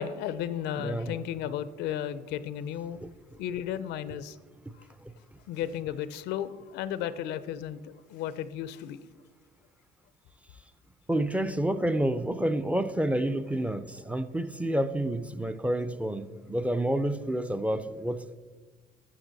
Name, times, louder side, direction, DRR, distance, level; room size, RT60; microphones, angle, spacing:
voice 1, 0.0-3.0 3.4-4.4 5.5-9.0, left 10 dB, 85° left, 0.5 m, -34 dB
voice 2, 0.8-1.2 3.0-3.1 5.0-5.1 11.1-18.3, right 1 dB, 10° right, 0.4 m, -29 dB
13.0 x 6.2 x 4.0 m
cardioid pair, 110°, 17 cm